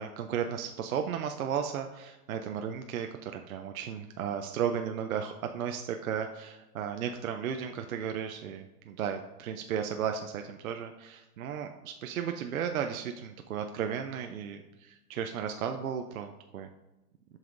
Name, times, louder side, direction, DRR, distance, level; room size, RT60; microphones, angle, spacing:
voice 1, 0.0-16.7, right 8 dB, 60° right, 5 dB, 0.6 m, -34 dB
7.7 x 5.6 x 2.5 m, 1.0 s
hypercardioid pair, 175°, 47 cm